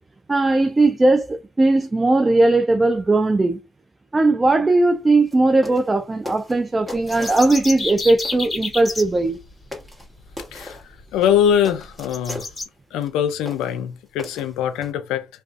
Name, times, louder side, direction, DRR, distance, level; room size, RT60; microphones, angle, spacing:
voice 1, 0.3-3.6 4.1-9.4, right 2 dB, 25° right, 0.3 m, -18 dB
sound 1, 5.2-5.4 5.6-5.9 6.3-7.9 8.3-8.5 9.3-9.4 9.7-10.1 10.4-10.8 11.2-12.5 13.0-13.1 13.5-13.8 14.2-14.9, left 2 dB, 5° right, 1.2 m, -37 dB
sound 2, 6.9-9.0 10.8-10.9 11.3-11.4 12.1-12.6, left 3 dB, 25° left, 1.3 m, -29 dB
voice 2, 10.5-12.5 12.9-15.3, left 9 dB, 90° left, 0.4 m, -22 dB
2.4 x 2.3 x 2.4 m
supercardioid pair, 70°, 0 cm